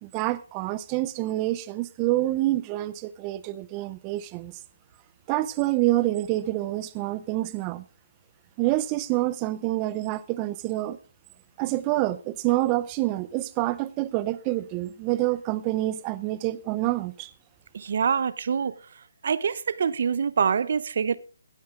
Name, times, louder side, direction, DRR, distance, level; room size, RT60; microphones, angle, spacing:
voice 1, 0.0-4.5 5.3-7.8 8.6-11.0 11.6-17.3, right 17 dB, 20° right, 0.6 m, -27 dB
voice 2, 17.7-18.7 19.2-21.2, right 6 dB, 55° right, 0.7 m, -25 dB
16.5 x 9.6 x 3.7 m
hypercardioid pair, 165°, 0 cm